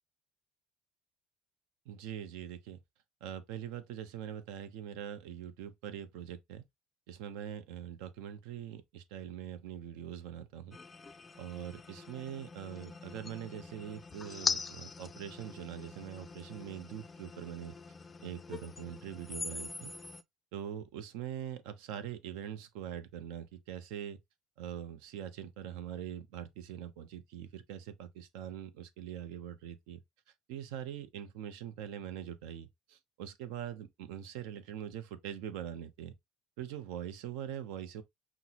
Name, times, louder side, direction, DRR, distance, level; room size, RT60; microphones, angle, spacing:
voice 1, 1.9-2.8 3.2-6.6 7.1-10.8 11.4-17.7 18.2-19.9 20.5-24.2 24.6-30.0 30.5-36.1 36.6-38.0, right 10 dB, 85° right, 0.6 m, -43 dB
sound 1, 10.7-20.2, left 4 dB, 20° left, 0.3 m, -42 dB
5.8 x 2.1 x 2.8 m
cardioid pair, 130°, 0 cm